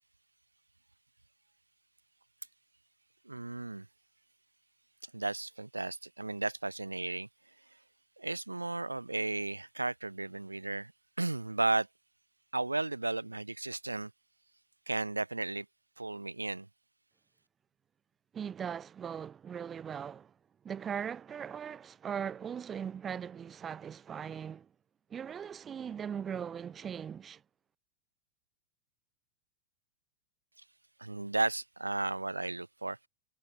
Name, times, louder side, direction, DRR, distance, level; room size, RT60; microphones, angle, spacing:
voice 1, 3.2-3.9 5.0-7.3 8.2-10.9 11.2-11.9 12.5-14.1 14.9-15.7 16.0-16.7 31.0-33.1, right 2 dB, 85° right, 0.9 m, -34 dB
voice 2, 18.3-20.3 20.6-24.7 25.1-27.4, right 8 dB, 20° right, 0.6 m, -39 dB
figure-of-eight pair, 90°, 0 cm